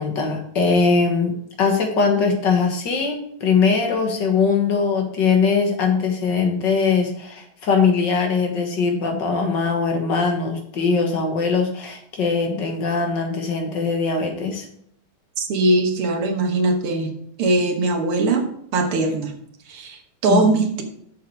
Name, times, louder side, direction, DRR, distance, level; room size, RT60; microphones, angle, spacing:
voice 1, 0.0-14.7 20.3-20.5, left 5 dB, 55° left, 3 dB, 2.0 m, -21 dB
voice 2, 15.4-17.1 17.4-18.5 18.7-19.3 19.7-20.8, right 2 dB, 80° right, 4 dB, 2.1 m, -20 dB
7.6 x 7.0 x 4.7 m, 0.66 s
omnidirectional pair, 2.4 m